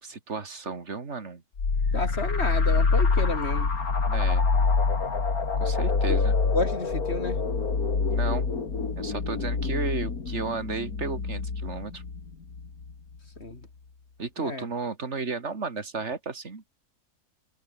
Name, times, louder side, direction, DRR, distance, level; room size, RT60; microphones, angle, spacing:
voice 1, 0.0-1.4 4.1-4.5 5.6-6.3 8.1-8.5 9.0-12.0 14.2-16.6, right 4 dB, 45° right, 2.6 m, -33 dB
sound 1, 1.6-12.9, left 4 dB, 65° left, 3.1 m, -26 dB
voice 2, 1.9-3.7 6.1-6.2 6.5-7.4 13.4-13.7 14.4-14.7, left 2 dB, 40° left, 4.6 m, -31 dB
omnidirectional pair, 1.7 m